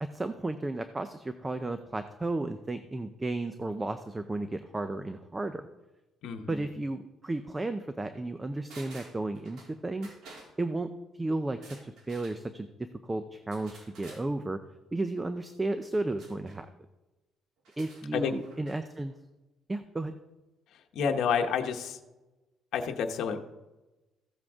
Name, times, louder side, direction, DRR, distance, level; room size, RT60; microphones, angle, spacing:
voice 1, 0.0-5.7 6.5-10.1 10.6-14.6 14.9-16.7 17.8-19.1 19.7-20.1, right 2 dB, 15° right, 9 dB, 0.5 m, -33 dB
voice 2, 6.2-6.6 18.1-18.3 20.9-22.0 22.7-23.4, left 6 dB, 70° left, 4 dB, 1.1 m, -29 dB
sound 1, 8.7-9.7 10.0-10.5 11.5-12.4 13.5-14.2 16.2-16.6 17.6-18.8 19.1-19.2, right 3 dB, 75° right, 3.3 m, -51 dB
15.0 x 7.6 x 3.6 m, 1.1 s
cardioid pair, 130°, 0 cm